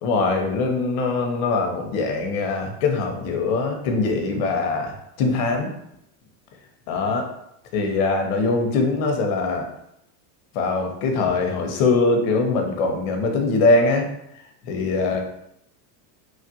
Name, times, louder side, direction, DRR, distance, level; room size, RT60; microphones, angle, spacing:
voice 1, 0.0-5.7 6.9-7.3 7.7-9.7 10.5-14.1 14.6-15.2, left 3 dB, 65° left, 3 dB, 0.8 m, -22 dB
3.1 x 2.4 x 2.7 m, 0.77 s
supercardioid pair, 135°, 48 cm